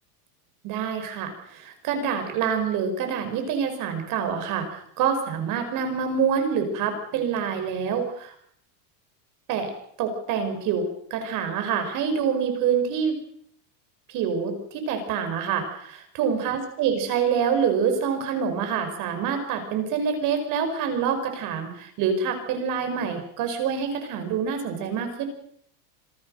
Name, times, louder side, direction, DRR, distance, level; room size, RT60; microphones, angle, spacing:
voice 1, 0.6-8.3 9.5-9.7 10.0-13.2 14.1-25.3, right 7 dB, 40° right, 6 dB, 5.4 m, -26 dB
27.0 x 19.0 x 6.5 m, 0.66 s
supercardioid pair, 165°, 47 cm